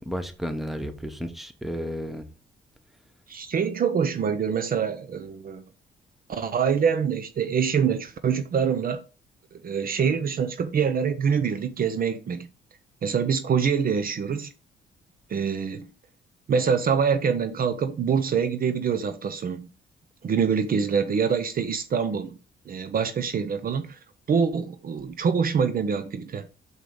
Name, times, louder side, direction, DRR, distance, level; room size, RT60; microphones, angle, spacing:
voice 1, 0.0-2.3, equal, ahead, 1.0 m, -32 dB
voice 2, 3.3-5.6 6.3-9.0 9.5-12.5 13.0-14.5 15.3-15.9 16.5-19.7 20.2-22.4 22.7-24.0 24.3-26.5, right 6 dB, 45° right, 0.7 m, -25 dB
6.4 x 5.0 x 3.8 m
cardioid pair, 90°, 20 cm